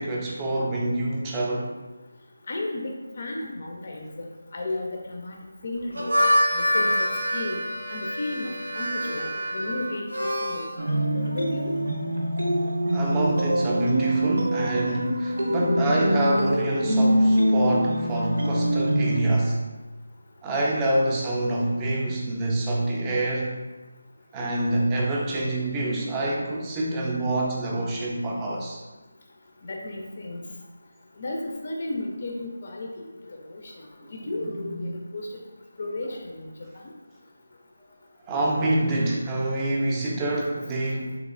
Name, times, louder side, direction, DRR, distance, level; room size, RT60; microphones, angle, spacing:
voice 1, 0.0-1.7 12.9-19.6 20.4-23.5 24.3-28.8 34.7-35.0 38.3-41.2, right 1 dB, 15° right, -3 dB, 0.4 m, -26 dB
voice 2, 2.5-4.3 4.5-6.1 6.5-7.6 7.9-11.7 15.4-15.5 29.6-30.4 31.2-35.3 35.8-36.5, left 2 dB, 45° left, 1 dB, 0.4 m, -34 dB
Harmonica, 5.8-10.7, equal, 90° right, 0.9 m, -26 dB
sound 1, 10.8-19.2, right 1 dB, 65° right, 0.6 m, -24 dB
3.5 x 3.1 x 2.4 m, 1.2 s
figure-of-eight pair, 160°, 0 cm